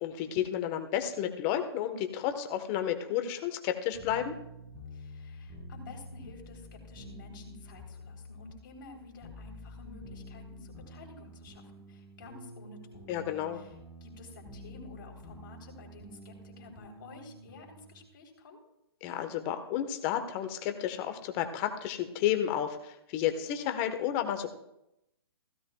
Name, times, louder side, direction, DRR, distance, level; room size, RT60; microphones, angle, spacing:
voice 1, 0.0-4.4 13.1-13.6 19.0-24.5, left 10 dB, 30° left, 7 dB, 1.3 m, -32 dB
sound 1, 3.9-18.0, equal, ahead, 4.5 m, -49 dB
voice 2, 4.9-12.8 13.5-13.7 14.0-18.6, left 3 dB, 55° left, 0 dB, 3.9 m, -51 dB
16.5 x 15.0 x 2.4 m, 0.83 s
hypercardioid pair, 135°, 13 cm